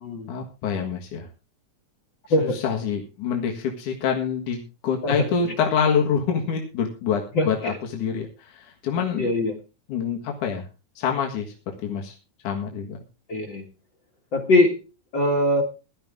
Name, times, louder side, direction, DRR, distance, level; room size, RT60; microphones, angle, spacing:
voice 1, 0.3-1.3 2.5-9.3 9.9-10.7 11.0-11.5 11.8-12.2 12.4-13.0, left 7 dB, 80° left, 1 dB, 3.2 m, -26 dB
voice 2, 2.3-2.6 5.0-5.5 7.3-7.7 9.2-9.5 13.3-13.7 14.3-14.8 15.1-15.6, left 1 dB, 40° left, 0 dB, 2.1 m, -22 dB
17.0 x 11.5 x 3.6 m, 0.30 s
omnidirectional pair, 3.5 m